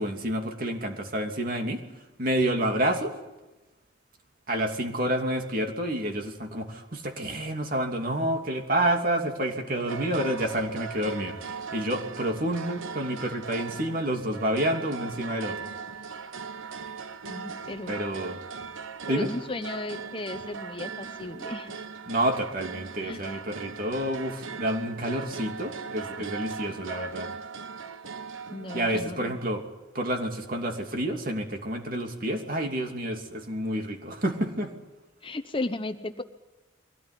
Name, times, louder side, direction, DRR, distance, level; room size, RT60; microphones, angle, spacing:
voice 1, 0.0-1.8 2.2-3.1 4.5-15.6 17.9-18.4 19.1-19.3 22.1-27.3 28.7-29.6 29.9-34.7, right 1 dB, 45° right, 3 dB, 2.9 m, -29 dB
sound 1, 9.9-29.0, right 5 dB, 85° right, 1.2 m, -39 dB
voice 2, 17.3-17.9 19.1-21.7 23.0-23.3 28.5-29.4 35.2-36.2, left 2 dB, 25° left, 9 dB, 0.8 m, -35 dB
23.0 x 17.5 x 9.9 m, 1.1 s
head